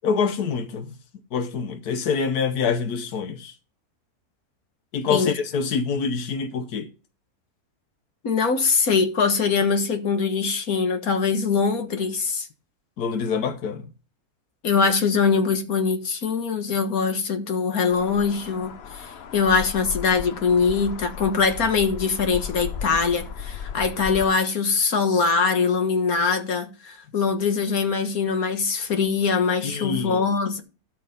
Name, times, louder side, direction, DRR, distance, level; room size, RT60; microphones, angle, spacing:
voice 1, 0.0-0.9 1.3-3.5 4.9-6.9 13.0-13.9 29.6-30.2, left 5 dB, 90° left, 1.5 m, -26 dB
voice 2, 8.2-12.5 14.6-30.6, left 5 dB, 70° left, 1.9 m, -22 dB
sound 1, 17.9-24.3, left 7 dB, 50° left, 0.9 m, -36 dB
13.0 x 6.3 x 3.6 m
omnidirectional pair, 1.6 m